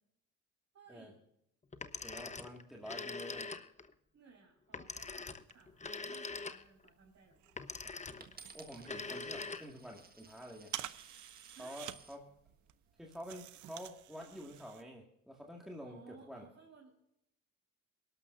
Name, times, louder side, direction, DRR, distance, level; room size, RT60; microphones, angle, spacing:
voice 1, 0.7-1.2 4.1-7.4 11.5-11.9 15.8-16.9, right 5 dB, 55° right, -4 dB, 5.1 m, -60 dB
Telephone, 1.7-3.9 4.7-6.9 7.6-8.4 8.8-9.9, left 4 dB, 25° left, 1.0 m, -43 dB
voice 2, 2.0-3.6 8.0-8.2 8.5-10.7 11.6-12.2 13.0-16.5, equal, ahead, -1 dB, 2.0 m, -48 dB
sound 1, 5.4-14.8, right 12 dB, 75° right, 0.8 m, -51 dB
Coin (dropping), 8.2-12.2 12.9-13.3, right 4 dB, 30° right, 1.7 m, -58 dB
22.5 x 12.5 x 2.6 m, 0.80 s
cardioid pair, 90°, 30 cm